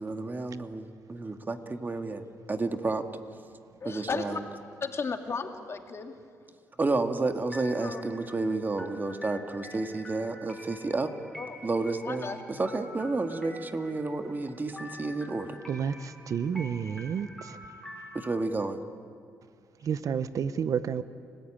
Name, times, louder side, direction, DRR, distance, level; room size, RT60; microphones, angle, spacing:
voice 1, 0.0-3.1 3.8-4.4 6.8-11.1 11.6-15.6 18.1-18.8, right 3 dB, 30° right, 6 dB, 1.9 m, -31 dB
voice 2, 3.8-4.4 4.8-6.2 7.8-8.0 11.4-11.6 12.0-12.4, left 4 dB, 45° left, 5 dB, 2.2 m, -34 dB
sound 1, 7.5-18.2, equal, ahead, 5.6 m, -47 dB
voice 3, 15.7-17.6 19.8-21.0, right 7 dB, 65° right, 13 dB, 0.9 m, -30 dB
30.0 x 15.0 x 9.0 m, 2.2 s
supercardioid pair, 65°, 6 cm